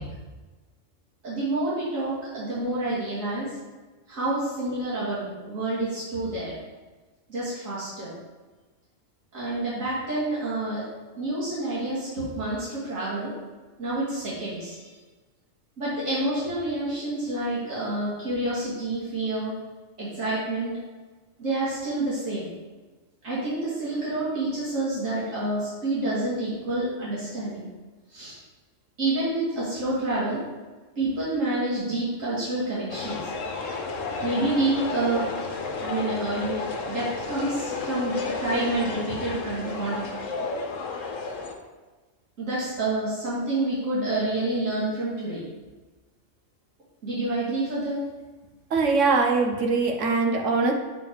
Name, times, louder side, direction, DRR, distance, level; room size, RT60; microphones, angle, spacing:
voice 1, 1.2-3.5 4.1-6.5 7.3-8.1 9.3-10.9 11.2-13.3 13.8-14.9 15.8-19.5 20.0-20.8 21.4-22.5 23.2-27.7 28.1-28.4 29.0-30.4 31.0-33.3 34.2-35.3 35.8-36.6 36.9-40.1 42.4-45.4 47.0-48.0, right 2 dB, 90° right, -10 dB, 2.7 m, -28 dB
sound 1, 32.9-41.5, left 4 dB, 85° left, 1.3 m, -32 dB
voice 2, 48.7-50.7, right 4 dB, 70° right, 1 dB, 1.3 m, -22 dB
8.2 x 3.8 x 4.6 m, 1.3 s
omnidirectional pair, 1.3 m